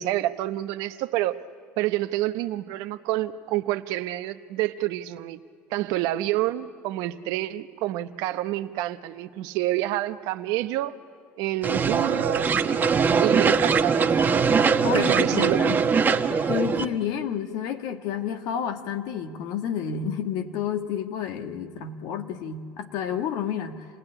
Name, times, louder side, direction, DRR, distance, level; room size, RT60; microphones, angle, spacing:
voice 1, 0.0-1.4 1.8-5.4 5.7-10.9 11.4-12.9 13.2-14.3 14.9-15.7, right 15 dB, 70° right, 10 dB, 0.9 m, -28 dB
sound 1, 11.6-16.8, right 5 dB, 30° right, 1.3 m, -22 dB
voice 2, 14.8-15.7 16.4-23.9, left 8 dB, 70° left, 6 dB, 1.5 m, -30 dB
27.0 x 17.5 x 9.9 m, 2.3 s
supercardioid pair, 85°, 7 cm